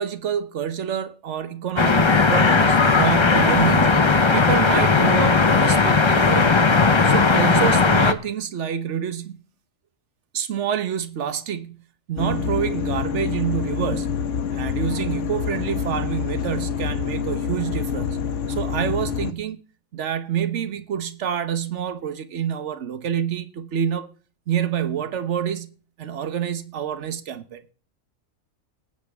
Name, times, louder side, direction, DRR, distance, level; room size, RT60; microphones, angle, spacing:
voice 1, 0.0-4.0 4.3-6.6 7.0-9.4 10.3-11.8 12.1-14.2 14.5-18.2 18.5-19.6 19.9-24.1 24.5-27.6, right 9 dB, 60° right, 1.3 m, -27 dB
sound 1, 1.8-8.1, left 4 dB, 25° left, 0.7 m, -17 dB
sound 2, 12.2-19.3, left 7 dB, 65° left, 1.2 m, -26 dB
19.0 x 8.5 x 3.5 m
omnidirectional pair, 1.4 m